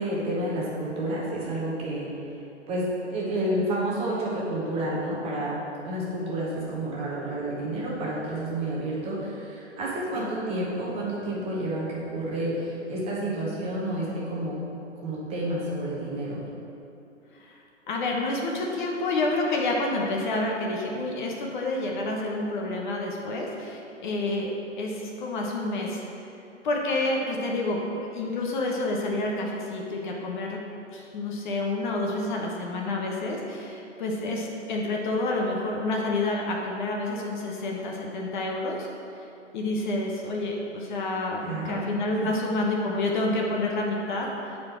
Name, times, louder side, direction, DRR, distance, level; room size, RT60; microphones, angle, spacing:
voice 1, 0.0-2.4 2.7-14.6 15.0-16.4 41.4-41.8 42.2-42.3, right 1 dB, 15° right, -5 dB, 1.0 m, -30 dB
voice 2, 17.3-24.5 24.8-26.0 26.6-30.6 30.9-38.9 39.2-39.3 39.5-44.6, left 2 dB, 40° left, -1 dB, 1.0 m, -29 dB
8.5 x 4.3 x 4.3 m, 2.8 s
figure-of-eight pair, 125°, 37 cm